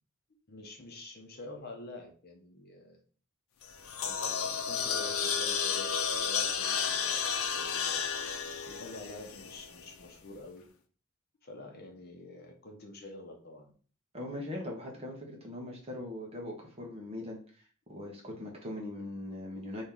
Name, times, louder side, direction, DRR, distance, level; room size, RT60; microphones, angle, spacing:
voice 1, 0.5-3.0 4.0-7.2 7.5-8.0 8.6-10.7 11.4-13.7, left 2 dB, 45° left, 3 dB, 0.9 m, -47 dB
sound 1, 3.6-9.9, left 7 dB, 80° left, 0.6 m, -32 dB
voice 2, 14.1-19.8, left 1 dB, 30° right, 0 dB, 1.2 m, -41 dB
4.3 x 3.1 x 3.8 m, 0.41 s
head